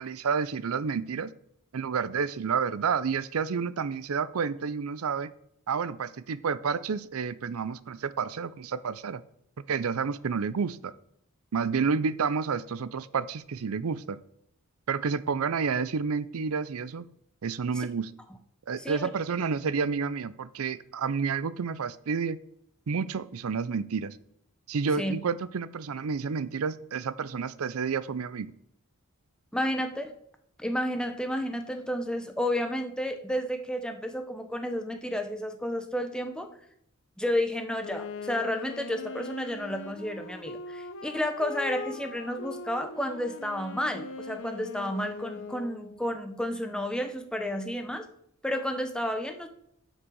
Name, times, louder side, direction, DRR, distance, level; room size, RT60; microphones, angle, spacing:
voice 1, 0.0-1.3 1.7-5.3 5.7-9.2 9.7-10.9 11.5-14.2 14.9-17.0 17.4-18.1 18.7-22.4 22.9-24.2 24.7-28.5, right 5 dB, 80° right, 16 dB, 0.5 m, -30 dB
voice 2, 18.8-19.1 25.0-25.2 29.5-30.1 30.6-36.5 37.2-48.0 48.4-49.5, equal, 5° left, 6 dB, 0.8 m, -31 dB
Wind instrument woodwind instrument, 37.8-46.1, left 4 dB, 60° left, 0.7 m, -41 dB
8.0 x 6.0 x 6.3 m, 0.72 s
head